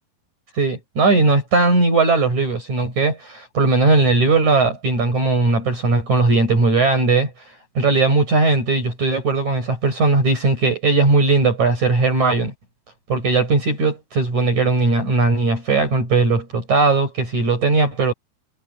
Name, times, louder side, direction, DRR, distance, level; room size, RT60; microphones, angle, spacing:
voice 1, 0.6-7.3 7.8-12.5 13.1-18.1, right 3 dB, 45° right, 8.0 m, -18 dB
omnidirectional pair, 4.9 m